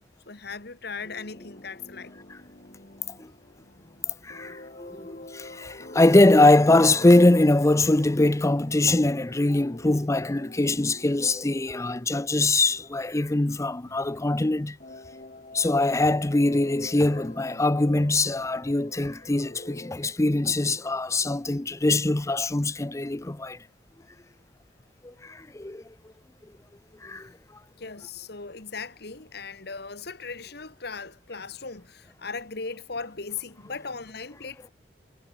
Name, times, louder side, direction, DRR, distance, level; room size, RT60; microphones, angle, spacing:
voice 1, 0.0-2.1 27.8-34.7, left 4 dB, 65° left, 1.9 m, -38 dB
sound 1, 1.0-14.3 14.8-19.9, left 1 dB, 45° left, 3.3 m, -47 dB
voice 2, 4.2-14.8 15.5-23.6 25.0-25.8 27.0-27.3, left 2 dB, 15° left, 0.6 m, -22 dB
head